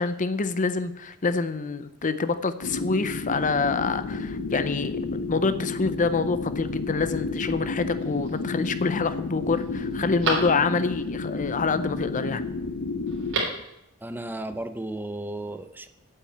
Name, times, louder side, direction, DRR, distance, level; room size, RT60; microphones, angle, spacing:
voice 1, 0.0-5.0 5.3-12.4, left 4 dB, 35° left, 12 dB, 0.6 m, -26 dB
sound 1, 2.6-13.3, left 3 dB, 60° left, 0.9 m, -31 dB
Telephone, 7.9-8.5 9.0-9.1 9.5-11.0 13.1-13.7 14.0-14.1, right 3 dB, 60° right, 3.5 m, -32 dB
voice 2, 14.0-15.9, right 1 dB, 10° right, 10 dB, 0.7 m, -34 dB
8.7 x 8.4 x 8.5 m, 0.83 s
head